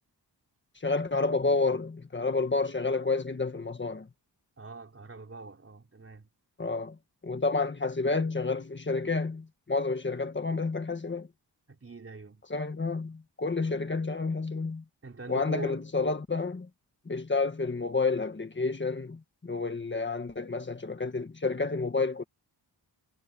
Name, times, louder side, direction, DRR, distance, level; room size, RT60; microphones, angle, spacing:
voice 1, 0.8-4.1 6.6-7.0 7.2-11.3 12.5-14.8 15.3-16.7 17.0-22.2, left 3 dB, 25° left, 1.5 m, -30 dB
voice 2, 4.6-6.3 11.7-12.4 15.0-15.8, right 3 dB, 35° right, 3.9 m, -43 dB
wide cardioid pair, 175°, 41 cm